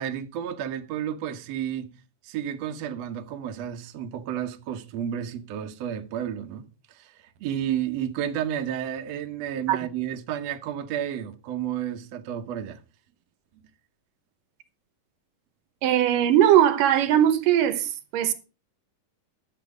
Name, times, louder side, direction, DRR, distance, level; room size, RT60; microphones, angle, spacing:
voice 1, 0.0-1.9 2.2-6.7 7.0-7.1 7.4-12.8, right 10 dB, 65° right, 1.9 m, -31 dB
voice 2, 15.8-18.3, right 11 dB, 80° right, 2.6 m, -20 dB
11.5 x 8.1 x 5.0 m
omnidirectional pair, 3.9 m